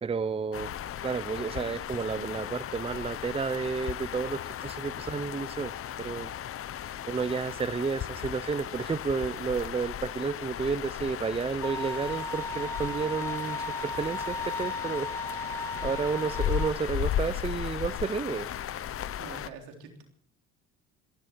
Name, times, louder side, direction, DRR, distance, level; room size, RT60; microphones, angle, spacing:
voice 1, 0.0-0.7 1.0-5.7 6.0-6.3 7.1-15.4 15.8-18.5, right 5 dB, 20° right, 17 dB, 0.6 m, -31 dB
sound 1, 0.5-19.5, left 10 dB, 45° left, 0.9 m, -36 dB
Bowed string instrument, 11.6-16.7, left 1 dB, 10° left, 2.3 m, -36 dB
voice 2, 19.2-20.0, right 5 dB, 85° right, 3 dB, 3.7 m, -45 dB
26.0 x 12.0 x 4.6 m, 0.64 s
supercardioid pair, 85°, 30 cm